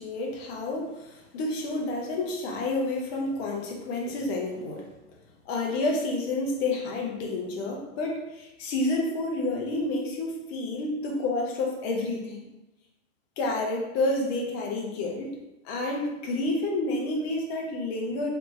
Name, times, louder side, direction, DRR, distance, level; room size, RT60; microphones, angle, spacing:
voice 1, 0.0-4.9 5.5-12.4 13.4-15.3 15.6-18.3, left 2 dB, 45° left, 1 dB, 0.9 m, -29 dB
3.2 x 2.6 x 3.1 m, 0.99 s
hypercardioid pair, 110°, 45 cm